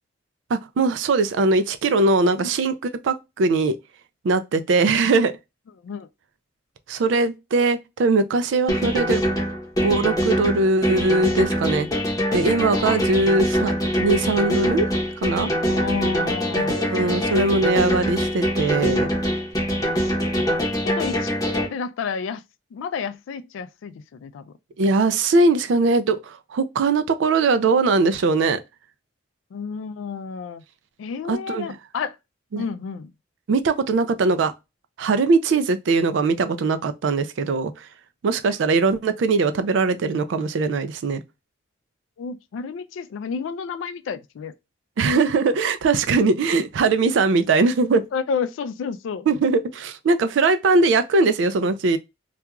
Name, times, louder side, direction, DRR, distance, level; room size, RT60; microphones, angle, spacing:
voice 1, 0.5-2.7 3.0-3.8 4.2-5.3 6.9-9.2 9.8-11.9 12.3-13.7 14.0-14.9 15.2-15.5 16.5-19.1 24.8-28.6 31.3-31.7 32.5-32.6 33.5-34.5 35.0-37.9 38.2-41.2 45.0-48.0 49.3-52.0, right 3 dB, 70° right, 0.3 m, -20 dB
sound 1, 8.7-21.7, equal, 20° left, 0.8 m, -23 dB
voice 2, 15.6-16.8 20.1-20.3 20.8-21.3 21.7-22.4 22.7-24.5 29.5-30.6 31.0-32.1 32.6-33.1 42.2-44.5 48.1-49.3, left 5 dB, 80° left, 0.3 m, -31 dB
2.4 x 2.3 x 2.8 m
head